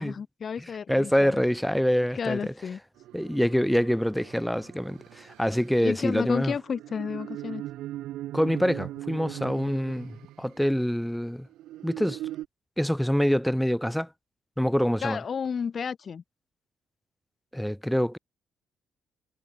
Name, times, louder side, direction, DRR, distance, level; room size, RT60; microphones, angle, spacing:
voice 1, 0.0-1.4 2.1-2.8 5.8-7.6 15.0-16.2, left 6 dB, 45° left, 1.6 m, -31 dB
voice 2, 0.9-2.5 3.1-6.5 8.3-11.5 11.8-12.2 12.8-14.1 14.6-15.2 17.5-18.2, equal, ahead, 1.7 m, -25 dB
sound 1, 3.0-10.8 11.5-12.5, right 14 dB, 85° right, 3.4 m, -40 dB
cardioid pair, 90°, 0 cm